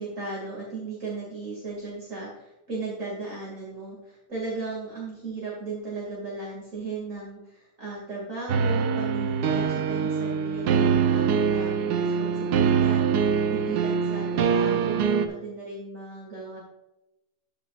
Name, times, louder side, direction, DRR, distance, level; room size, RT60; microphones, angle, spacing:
voice 1, 0.0-16.6, right 3 dB, 50° right, -5 dB, 2.8 m, -36 dB
sound 1, 8.5-15.3, right 6 dB, 75° right, 1.3 m, -24 dB
13.5 x 6.7 x 2.5 m, 0.93 s
omnidirectional pair, 1.8 m